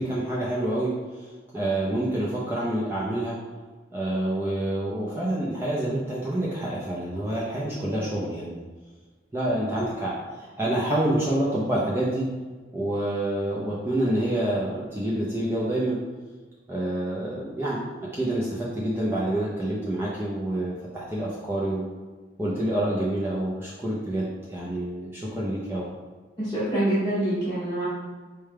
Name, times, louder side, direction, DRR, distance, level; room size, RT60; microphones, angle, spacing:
voice 1, 0.0-3.4 3.9-8.5 9.3-12.3 12.7-16.0 16.7-17.8 18.1-21.8 22.4-25.9, right 1 dB, 10° right, -7 dB, 0.4 m, -27 dB
voice 2, 26.4-27.8, right 1 dB, 20° left, -11 dB, 0.7 m, -25 dB
4.7 x 2.1 x 3.3 m, 1.4 s
head